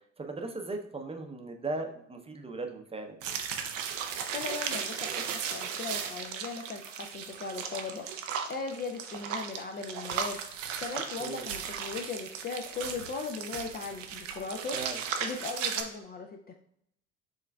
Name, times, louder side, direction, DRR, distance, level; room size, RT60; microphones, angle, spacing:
voice 1, 0.2-3.2 11.2-11.5 14.7-15.0, right 3 dB, 15° right, 4 dB, 0.6 m, -37 dB
sound 1, 3.2-15.8, right 7 dB, 75° right, 0.6 m, -36 dB
voice 2, 4.3-10.4 10.8-14.8 15.2-16.5, left 4 dB, 25° left, 3 dB, 0.4 m, -38 dB
6.2 x 3.2 x 2.3 m, 0.73 s
figure-of-eight pair, 55°, 38 cm